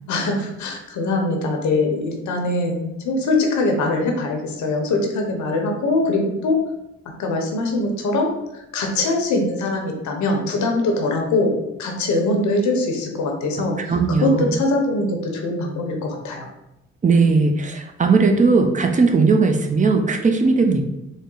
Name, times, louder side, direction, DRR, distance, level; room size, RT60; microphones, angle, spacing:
voice 1, 0.1-6.6 7.2-8.3 8.7-11.5 11.8-13.7 14.2-16.5, left 2 dB, 70° left, 2 dB, 0.9 m, -22 dB
voice 2, 13.9-14.6 17.0-20.8, right 4 dB, 25° right, 4 dB, 0.5 m, -18 dB
4.0 x 2.0 x 3.8 m, 0.89 s
cardioid pair, 90°, 30 cm